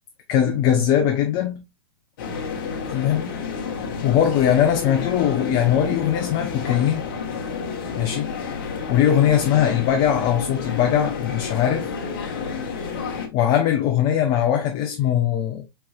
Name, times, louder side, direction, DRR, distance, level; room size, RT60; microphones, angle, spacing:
voice 1, 0.3-1.6 2.9-3.3 4.0-7.0 8.0-11.9 12.8-12.9 13.3-15.6, left 10 dB, 40° left, 0.7 m, -21 dB
sound 1, 2.2-13.3, left 5 dB, 55° left, 1.3 m, -30 dB
4.5 x 4.4 x 2.3 m
hypercardioid pair, 105°, 12 cm